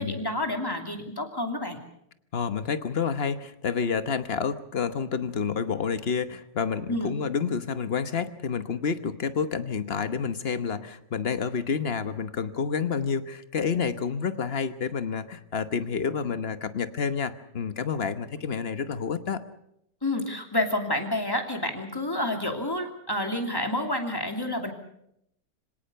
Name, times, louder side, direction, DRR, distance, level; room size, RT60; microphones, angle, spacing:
voice 1, 0.0-1.8 6.9-7.1 20.0-24.7, left 1 dB, 15° left, 4 dB, 2.7 m, -29 dB
voice 2, 2.3-19.4, left 6 dB, 40° left, 11 dB, 1.1 m, -29 dB
25.5 x 17.5 x 6.8 m, 0.77 s
omnidirectional pair, 1.8 m